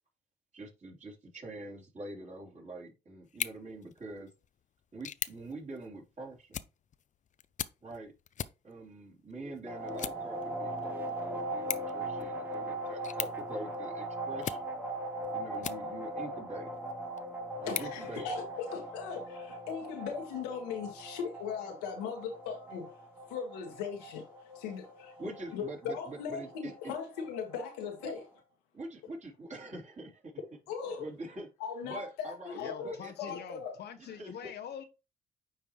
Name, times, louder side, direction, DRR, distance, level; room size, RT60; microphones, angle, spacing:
voice 1, 0.5-4.3 4.9-6.6 7.8-8.1 8.6-14.6 15.3-16.7 17.6-18.3 25.2-26.9 28.0-28.2 28.7-30.3 31.0-31.5 31.8-33.4 34.0-34.5, right 2 dB, 40° right, 3.4 m, -45 dB
sound 1, 3.2-16.2 16.7-18.8, left 9 dB, 40° left, 0.5 m, -44 dB
sound 2, 9.7-28.2, right 1 dB, 10° right, 1.5 m, -40 dB
voice 2, 17.6-22.9 23.3-24.2 24.5-25.1 25.5-28.2 30.7-31.1 31.6-33.8, left 6 dB, 85° left, 1.5 m, -38 dB
voice 3, 32.5-34.8, left 8 dB, 60° left, 0.9 m, -44 dB
9.3 x 3.3 x 3.0 m
hypercardioid pair, 55°, 19 cm